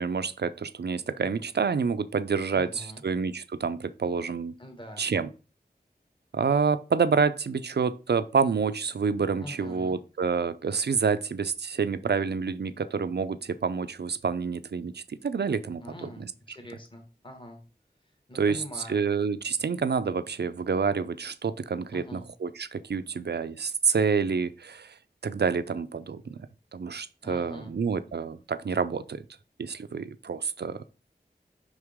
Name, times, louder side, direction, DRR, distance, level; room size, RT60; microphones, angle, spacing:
voice 1, 0.0-4.5 5.0-5.3 6.3-16.2 18.3-18.6 18.9-25.0 25.2-26.4 26.7-29.2 29.6-30.8, right 5 dB, 80° right, 0.5 m, -28 dB
voice 2, 2.5-3.0 4.6-5.0 9.4-10.0 15.8-17.6 18.0-19.1 21.9-22.3 27.2-27.7, equal, 30° left, 1.6 m, -44 dB
5.9 x 4.8 x 3.6 m
wide cardioid pair, 60°, 17 cm